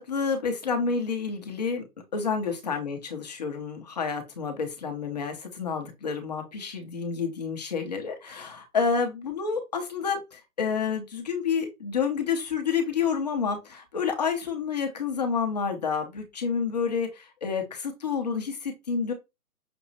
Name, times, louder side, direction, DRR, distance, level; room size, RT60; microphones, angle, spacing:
voice 1, 0.0-1.8 2.1-19.1, left 5 dB, 30° left, 4 dB, 0.7 m, -29 dB
6.0 x 2.7 x 2.6 m, 0.24 s
hypercardioid pair, 155°, 46 cm